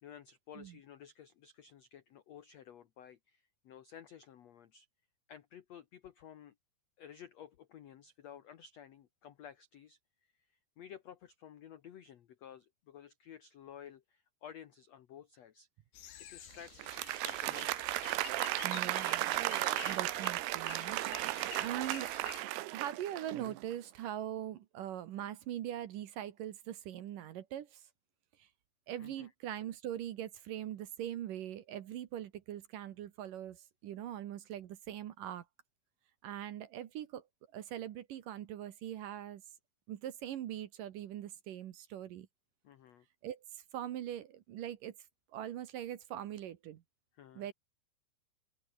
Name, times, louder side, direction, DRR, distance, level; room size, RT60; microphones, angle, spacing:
voice 1, 0.0-4.9 5.3-6.5 7.0-10.0 10.8-15.7 16.2-17.8 29.0-29.3 42.6-43.0 47.1-47.5, left 9 dB, 90° left, 1.4 m, -53 dB
sound 1, 15.9-22.4, left 11 dB, 70° left, 3.7 m, -49 dB
Applause, 16.7-23.7, right 18 dB, 80° right, 2.8 m, -35 dB
voice 2, 18.6-19.4 19.8-21.3 21.6-22.1 22.7-27.8 28.4-28.5 28.9-35.5 36.2-37.2 37.5-39.4 39.9-42.3 43.2-45.0 45.3-46.8 47.4-47.5, right 11 dB, 65° right, 2.5 m, -42 dB
open air
omnidirectional pair, 4.8 m